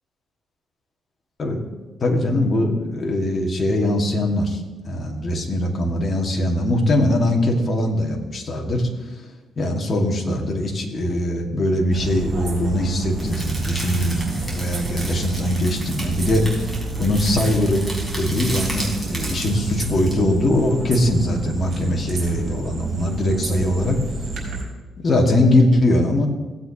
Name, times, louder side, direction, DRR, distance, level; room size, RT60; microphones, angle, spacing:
voice 1, 2.0-8.9 9.6-16.7 17.0-17.9 18.1-24.0 25.0-26.3, left 1 dB, 40° left, 1 dB, 1.8 m, -21 dB
sound 1, 11.9-24.6, right 3 dB, 55° right, 3.5 m, -30 dB
sound 2, 13.2-20.1, right 1 dB, 5° right, 3.4 m, -34 dB
16.5 x 8.1 x 2.9 m, 1.2 s
cardioid pair, 90°, 0 cm